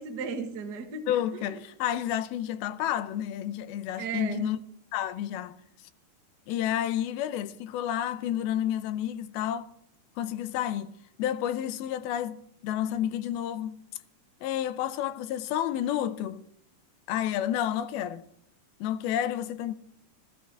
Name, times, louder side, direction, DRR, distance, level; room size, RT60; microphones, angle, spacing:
voice 1, 0.0-1.5 4.0-4.5, right 5 dB, 50° right, 1.1 m, -36 dB
voice 2, 1.1-4.6 4.9-5.6 6.5-9.7 10.2-13.8 14.4-16.5 17.1-18.2 18.8-19.8, left 11 dB, 85° left, 2.6 m, -30 dB
16.5 x 13.0 x 4.6 m
omnidirectional pair, 4.4 m